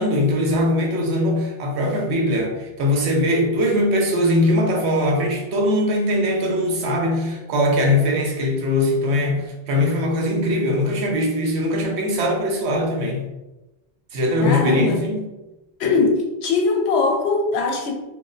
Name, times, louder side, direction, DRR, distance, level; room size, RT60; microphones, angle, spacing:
voice 1, 0.0-13.2 14.1-15.2, left 1 dB, 80° right, 1 dB, 0.9 m, -21 dB
voice 2, 14.4-15.0 15.8-17.9, left 4 dB, 75° left, 2 dB, 0.8 m, -21 dB
2.4 x 2.1 x 3.7 m, 1.0 s
omnidirectional pair, 1.1 m